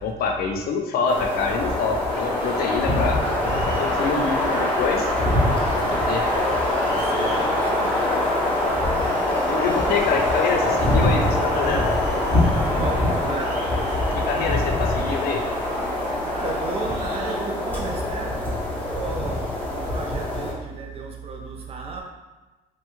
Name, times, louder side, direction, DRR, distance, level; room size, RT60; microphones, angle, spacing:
voice 1, 0.0-3.2 3.6-5.1 5.8-6.3 9.5-11.9 14.2-15.4, left 5 dB, 65° left, 3 dB, 0.5 m, -26 dB
sound 1, 1.1-20.5, left 1 dB, 10° left, 0.7 m, -23 dB
sound 2, 2.1-17.3, right 2 dB, 90° right, 1.0 m, -35 dB
voice 2, 6.9-8.1 12.8-13.7 16.2-18.5 18.8-22.0, right 4 dB, 35° right, 0 dB, 0.6 m, -33 dB
3.0 x 2.3 x 3.0 m, 1.1 s
cardioid pair, 110°, 17 cm